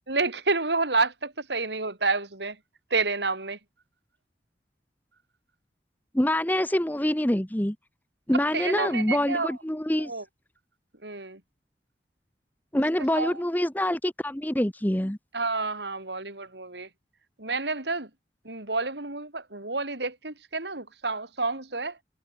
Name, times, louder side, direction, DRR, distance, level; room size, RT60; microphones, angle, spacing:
voice 1, 0.1-2.6 2.9-3.6 8.5-9.6 10.0-10.2 11.0-11.4 12.7-12.8 13.1-13.4 15.3-16.9 17.4-18.1 18.4-22.0, right 3 dB, 80° right, 4.8 m, -29 dB
voice 2, 6.1-7.8 8.3-10.1 12.7-15.2, left 1 dB, 10° left, 1.0 m, -25 dB
head